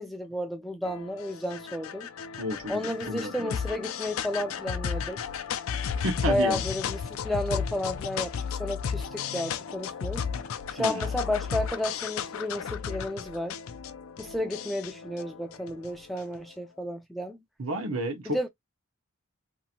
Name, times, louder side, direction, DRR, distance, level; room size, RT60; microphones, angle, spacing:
voice 1, 0.0-2.1 2.7-5.2 6.3-10.3 10.7-13.6 14.2-17.4 18.3-18.5, left 1 dB, ahead, 0.3 m, -32 dB
sound 1, 0.8-16.4, left 7 dB, 75° left, 0.4 m, -34 dB
voice 2, 2.4-3.5 6.0-6.6 10.8-11.1 17.6-18.5, right 1 dB, 75° right, 0.9 m, -31 dB
2.8 x 2.5 x 2.8 m
head